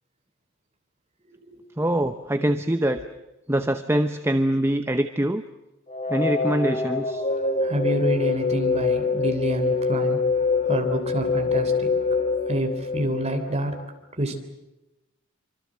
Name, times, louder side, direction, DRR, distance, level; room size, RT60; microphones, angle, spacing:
voice 1, 1.8-3.0 3.5-5.4 6.1-7.3, right 1 dB, 10° right, 9 dB, 0.8 m, -24 dB
sound 1, 5.9-13.8, left 4 dB, 30° left, 2.4 m, -25 dB
voice 2, 7.6-10.2 10.6-11.9 12.5-13.8 14.2-14.4, right 1 dB, 30° right, 5 dB, 3.3 m, -27 dB
26.0 x 25.5 x 7.6 m, 0.97 s
head